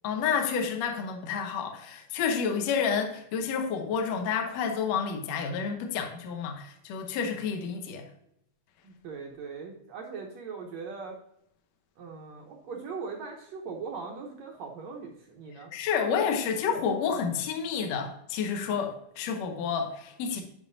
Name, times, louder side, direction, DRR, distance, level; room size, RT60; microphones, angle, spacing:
voice 1, 0.0-8.0 15.7-20.4, left 6 dB, 70° left, 4 dB, 1.7 m, -30 dB
voice 2, 8.8-11.2 12.0-15.7, right 5 dB, 75° right, 0 dB, 1.6 m, -40 dB
10.5 x 5.4 x 2.7 m, 0.75 s
omnidirectional pair, 4.2 m